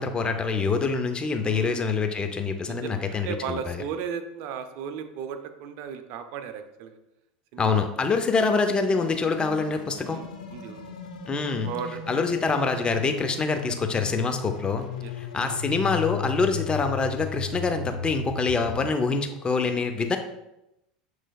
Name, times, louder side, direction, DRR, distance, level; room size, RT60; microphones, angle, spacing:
voice 1, 0.0-3.8 7.6-10.2 11.3-11.7 12.1-14.8 15.1-20.2, left 4 dB, 25° left, 6 dB, 0.6 m, -25 dB
voice 2, 1.4-1.8 2.7-7.0 7.5-7.8 10.1-10.9 11.7-12.0 15.0-15.1, right 6 dB, 60° right, 8 dB, 0.5 m, -35 dB
sound 1, 8.9-18.9, left 7 dB, 90° left, 0.6 m, -36 dB
7.3 x 3.2 x 2.3 m, 0.88 s
hypercardioid pair, 95°, 4 cm